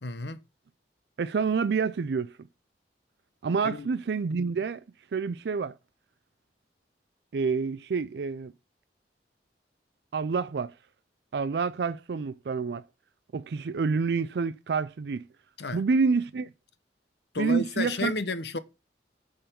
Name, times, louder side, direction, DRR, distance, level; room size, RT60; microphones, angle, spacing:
voice 1, 0.0-0.4 3.6-3.9 15.6-15.8 17.3-18.6, left 3 dB, 70° left, 0.8 m, -32 dB
voice 2, 1.2-2.3 3.4-4.8 5.1-5.8 7.3-8.5 10.1-10.7 11.3-12.8 13.3-15.2 15.7-16.5 17.4-18.1, right 5 dB, 70° right, 0.4 m, -28 dB
10.0 x 3.9 x 6.8 m
head